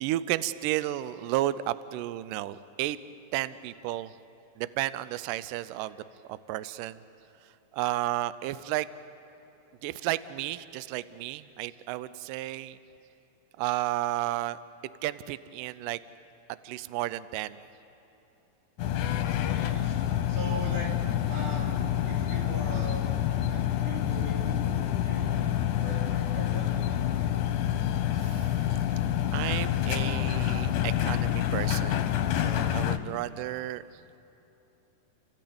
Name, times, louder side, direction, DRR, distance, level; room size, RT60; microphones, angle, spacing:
voice 1, 0.0-3.0 3.3-4.1 4.6-6.0 6.3-7.0 7.7-8.9 9.8-12.8 13.6-14.6 15.0-16.0 16.6-17.6 28.2-28.7 29.3-32.1 32.4-33.8, right 15 dB, 85° right, 15 dB, 1.9 m, -32 dB
sound 1, 18.8-33.0, left 11 dB, 70° left, 2.0 m, -27 dB
voice 2, 19.2-20.0 20.3-20.9 21.3-27.4, right 2 dB, 65° right, -4 dB, 5.9 m, -41 dB
30.0 x 15.0 x 8.7 m, 3.0 s
omnidirectional pair, 4.6 m